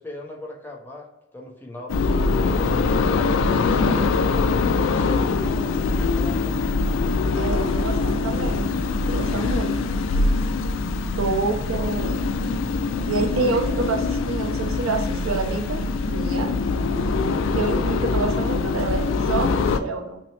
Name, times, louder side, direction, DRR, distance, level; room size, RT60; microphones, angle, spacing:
voice 1, 0.0-4.3 4.8-6.6 11.3-12.0, left 1 dB, 10° left, -1 dB, 0.5 m, -40 dB
sound 1, 1.9-19.8, left 3 dB, 65° left, 0.3 m, -23 dB
voice 2, 7.4-8.7 9.1-9.7 11.2-12.2 13.1-15.8 16.1-16.5 17.5-20.2, right 3 dB, 85° right, 3 dB, 0.7 m, -27 dB
sound 2, 10.7-18.3, left 1 dB, 45° left, 0.7 m, -44 dB
5.4 x 2.0 x 3.2 m, 0.95 s
head